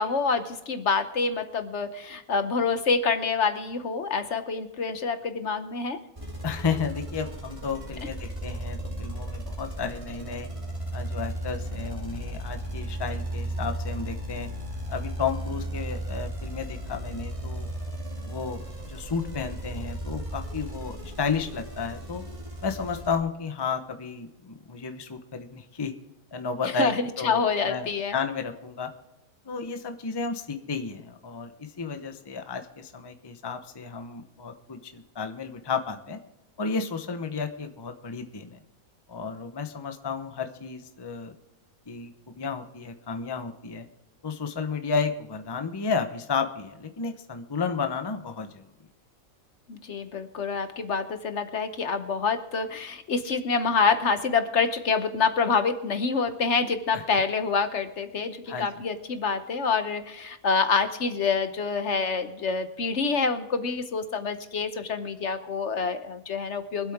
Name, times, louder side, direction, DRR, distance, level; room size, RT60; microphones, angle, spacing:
voice 1, 0.0-6.0 26.8-28.1 49.7-66.9, left 5 dB, 60° left, 9 dB, 1.1 m, -27 dB
sound 1, 6.2-23.2, right 1 dB, 20° right, 2.3 m, -35 dB
voice 2, 6.4-10.5 10.9-14.5 14.9-17.7 18.2-22.2 22.6-25.9 26.3-28.9 29.4-36.2 36.6-38.6 39.1-41.3 41.9-43.9 44.2-48.6 56.9-57.0 58.5-58.7, left 5 dB, 20° left, 7 dB, 0.8 m, -32 dB
24.0 x 8.2 x 3.6 m, 0.95 s
omnidirectional pair, 1.5 m